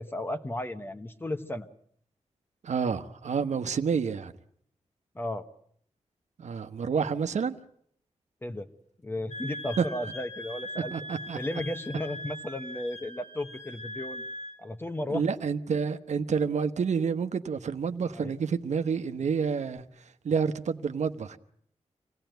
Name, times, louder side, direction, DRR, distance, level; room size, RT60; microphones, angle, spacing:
voice 1, 0.0-1.7 5.1-5.5 8.4-8.7 9.0-10.9 11.3-14.2 14.6-15.2 18.1-18.4, left 1 dB, 20° left, 1.2 m, -34 dB
voice 2, 2.6-4.3 6.4-7.6 9.8-9.9 10.9-11.4 15.1-19.8 20.2-21.4, right 6 dB, 75° right, 1.1 m, -29 dB
Wind instrument woodwind instrument, 9.3-14.6, left 1 dB, 70° left, 3.4 m, -41 dB
26.5 x 17.5 x 9.2 m
wide cardioid pair, 150°, 12 cm